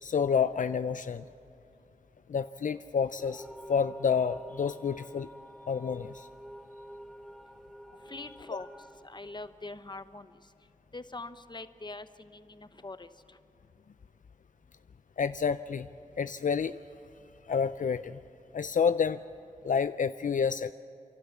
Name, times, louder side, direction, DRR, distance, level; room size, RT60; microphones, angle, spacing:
voice 1, 0.0-1.3 2.3-5.3 5.7-6.3 8.5-8.6 15.2-15.9 16.2-16.8 17.5-18.2 18.5-19.2 19.6-20.7, left 6 dB, 70° left, 12 dB, 0.4 m, -29 dB
sound 1, 3.2-10.1, equal, ahead, 0.6 m, -49 dB
voice 2, 8.0-10.5 10.9-13.4, left 2 dB, 35° left, 11 dB, 0.9 m, -44 dB
30.0 x 12.0 x 8.3 m, 2.5 s
cardioid pair, 50°, 14 cm